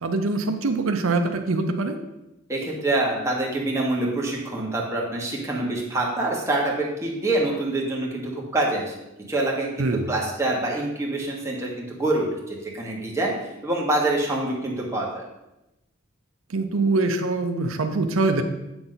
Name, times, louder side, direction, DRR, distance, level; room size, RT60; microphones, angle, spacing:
voice 1, 0.0-2.0 9.8-10.1 16.5-18.4, right 3 dB, 85° right, 6 dB, 0.6 m, -23 dB
voice 2, 2.5-8.9 9.3-13.3 13.6-15.2, right 2 dB, 15° right, -3 dB, 1.4 m, -26 dB
7.8 x 6.0 x 3.9 m, 0.93 s
head